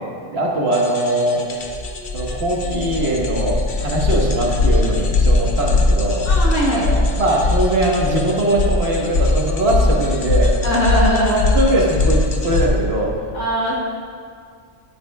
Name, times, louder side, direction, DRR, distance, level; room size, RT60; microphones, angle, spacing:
voice 1, 0.3-1.5 2.1-6.3 6.7-10.5 11.3-13.1, right 1 dB, 55° right, -2 dB, 1.6 m, -21 dB
sound 1, 0.7-12.7, left 2 dB, 50° left, 1.0 m, -20 dB
voice 2, 6.3-6.9 10.6-11.5 13.3-13.7, equal, 80° left, -5 dB, 1.7 m, -20 dB
12.0 x 9.8 x 2.3 m, 2.1 s
omnidirectional pair, 1.3 m